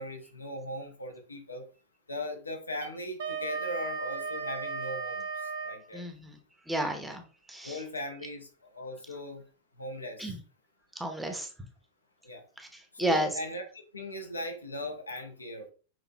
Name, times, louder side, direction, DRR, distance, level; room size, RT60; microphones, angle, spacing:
voice 1, 0.0-1.7 2.1-6.1 7.6-9.4 9.8-10.3 12.2-12.4 12.9-15.7, left 1 dB, 80° left, 3 dB, 0.9 m, -39 dB
Wind instrument woodwind instrument, 2.7-5.8, right 5 dB, 60° right, 1.1 m, -35 dB
voice 2, 5.9-6.4 6.7-7.8 10.2-10.4 10.9-11.5 12.6-13.4, right 1 dB, 5° right, 4 dB, 0.9 m, -32 dB
6.0 x 3.4 x 2.3 m, 0.37 s
figure-of-eight pair, 90°, 0 cm